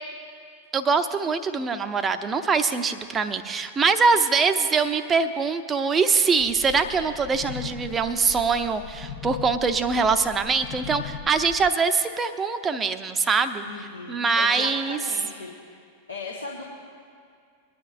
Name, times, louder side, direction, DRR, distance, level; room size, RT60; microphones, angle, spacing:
voice 1, 0.7-13.6 14.1-15.0, right 5 dB, 20° right, 9 dB, 0.7 m, -23 dB
sound 1, 6.4-11.7, left 8 dB, 30° left, 0.8 m, -39 dB
voice 2, 13.6-15.5 16.1-16.6, left 4 dB, 75° left, -2 dB, 1.4 m, -37 dB
23.0 x 10.5 x 2.6 m, 2.3 s
figure-of-eight pair, 90°, 0 cm